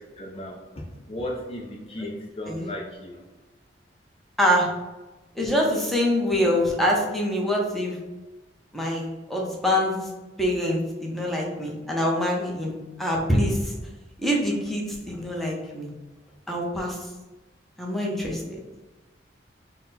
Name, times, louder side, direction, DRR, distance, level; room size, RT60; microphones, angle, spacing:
voice 1, 0.0-3.2, left 1 dB, 35° left, -2 dB, 0.5 m, -36 dB
voice 2, 4.4-4.7 5.4-8.0 8.7-9.9 10.4-13.7 14.2-15.9 16.5-17.0 17.8-18.6, equal, ahead, -3 dB, 0.7 m, -25 dB
4.0 x 2.2 x 4.0 m, 1.1 s
head